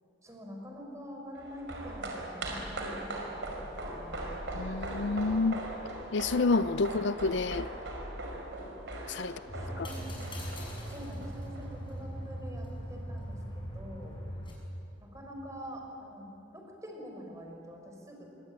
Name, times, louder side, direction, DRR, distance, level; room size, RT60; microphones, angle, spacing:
voice 1, 0.2-4.2 9.2-10.1 10.9-14.2 15.0-18.3, equal, 15° right, 2 dB, 5.1 m, -46 dB
sound 1, 1.3-11.9 12.2-12.3, right 1 dB, 65° right, 5.3 m, -40 dB
voice 2, 4.5-5.6 6.1-7.7 9.1-9.4 9.8-9.9, left 3 dB, 65° left, 15 dB, 0.5 m, -29 dB
sound 2, 9.5-14.5, equal, 25° left, 6.7 m, -40 dB
26.5 x 24.0 x 9.3 m, 2.9 s
head